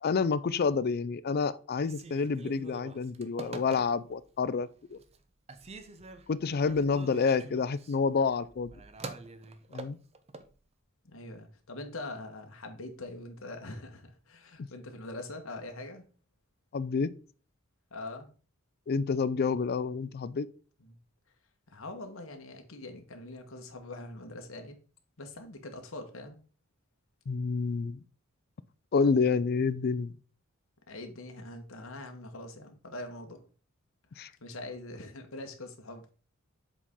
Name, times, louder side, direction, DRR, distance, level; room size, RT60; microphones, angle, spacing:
voice 1, 0.0-5.0 6.3-8.7 9.7-10.0 16.7-17.1 18.9-20.5 27.3-28.0 28.9-30.1 34.2-34.3, left 5 dB, 45° left, 0.4 m, -28 dB
Telephone, 1.8-4.2 4.7-5.2 5.5-10.5, right 3 dB, 30° right, 0.6 m, -46 dB
voice 2, 11.0-16.0 17.9-18.3 20.8-21.0 21.7-24.8 25.2-26.4 30.9-33.4 34.1-36.1, left 2 dB, 70° left, 1.2 m, -43 dB
7.4 x 4.1 x 3.6 m
head